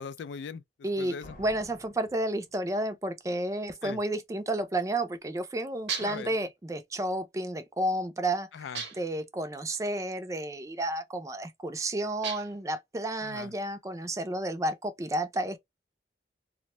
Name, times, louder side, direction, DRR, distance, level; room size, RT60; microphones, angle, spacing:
voice 1, 0.0-1.4 3.8-4.0 6.0-6.3 8.5-8.8 13.2-13.5, left 6 dB, 80° left, 0.3 m, -40 dB
voice 2, 0.8-8.5 9.0-15.6, right 1 dB, 20° right, 0.4 m, -31 dB
Slam, 1.2-3.1, left 1 dB, 50° left, 0.8 m, -52 dB
sound 1, 5.9-6.3 8.7-9.2 12.2-12.7, right 6 dB, 85° right, 0.8 m, -36 dB
2.5 x 2.1 x 2.9 m
head